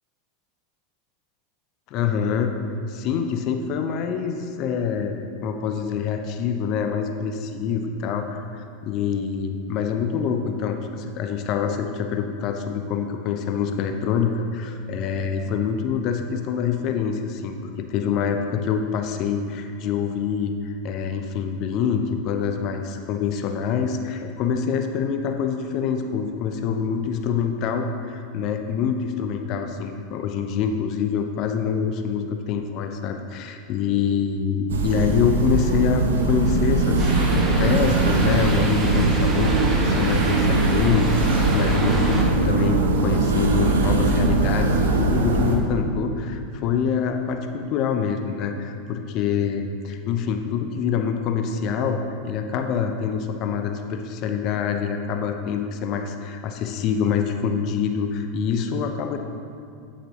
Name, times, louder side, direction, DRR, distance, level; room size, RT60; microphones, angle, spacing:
voice 1, 1.9-2.5 2.9-59.2, left 6 dB, 50° left, 5 dB, 0.7 m, -26 dB
sound 1, 34.7-45.6, right 2 dB, 75° right, 0.9 m, -21 dB
sound 2, 37.0-42.2, right 1 dB, 25° right, 1.8 m, -29 dB
9.4 x 8.5 x 3.0 m, 2.4 s
hypercardioid pair, 85°, 0 cm